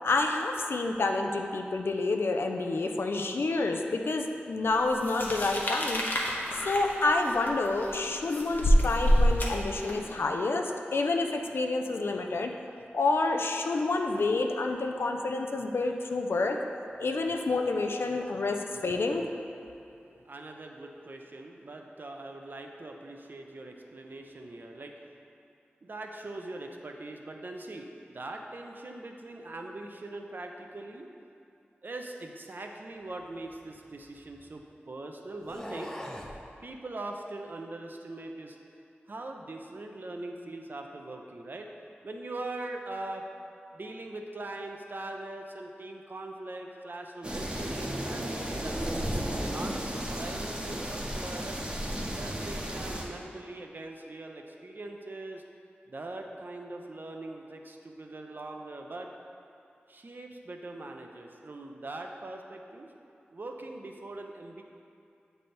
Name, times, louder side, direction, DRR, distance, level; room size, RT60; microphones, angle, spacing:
voice 1, 0.0-6.0 6.7-12.5 12.9-16.6 17.0-19.3, left 3 dB, 75° left, 3 dB, 0.4 m, -28 dB
sound 1, 5.0-10.1, equal, 55° left, 0.8 m, -26 dB
voice 2, 20.3-25.0 25.8-31.1 31.8-35.9 36.6-38.6 39.1-41.7 42.0-43.3 43.7-48.9 49.4-51.6 52.2-55.4 55.9-59.1 59.9-62.9 63.3-64.6, right 2 dB, 55° right, 2 dB, 0.6 m, -41 dB
sound 2, 33.1-34.6 35.4-36.4, equal, 15° left, 0.6 m, -43 dB
sound 3, 47.2-53.0, equal, 25° right, 0.9 m, -34 dB
7.7 x 3.4 x 4.3 m, 2.6 s
wide cardioid pair, 55°, 4 cm